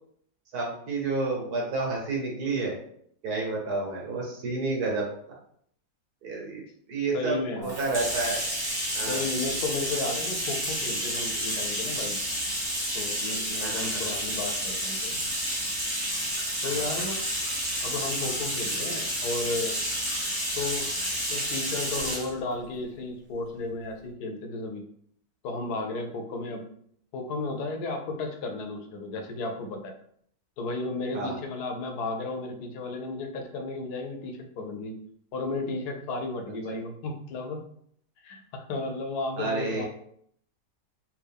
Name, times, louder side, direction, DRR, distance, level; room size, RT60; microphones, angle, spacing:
voice 1, 0.5-2.8 3.2-5.1 6.2-6.6 6.9-8.4 8.9-9.3 13.6-14.1 16.6-16.9 31.1-31.4 39.4-39.8, right 3 dB, 75° right, -1 dB, 1.5 m, -30 dB
voice 2, 7.1-7.8 9.1-12.2 12.9-15.2 16.6-17.2 17.8-19.8 20.6-20.9 21.3-24.8 25.4-26.7 27.1-29.9 30.6-35.0 35.3-37.6 38.2-39.8, left 3 dB, 80° left, 4 dB, 1.2 m, -33 dB
Bathtub (filling or washing), 7.6-22.3, equal, 20° right, 0.9 m, -30 dB
3.5 x 2.7 x 3.5 m, 0.65 s
omnidirectional pair, 1.7 m